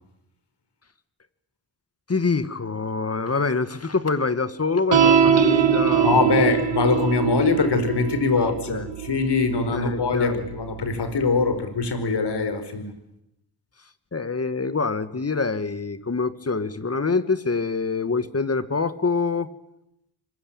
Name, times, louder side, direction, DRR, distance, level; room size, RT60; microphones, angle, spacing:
voice 1, 2.1-6.5 8.4-8.9 9.5-10.4 14.1-19.5, left 4 dB, 35° left, 13 dB, 2.0 m, -26 dB
sound 1, 4.9-11.6, right 8 dB, 80° right, 1.9 m, -23 dB
voice 2, 6.0-12.9, left 4 dB, 65° left, 10 dB, 5.0 m, -23 dB
25.0 x 23.0 x 8.9 m, 0.84 s
cardioid pair, 60°, 44 cm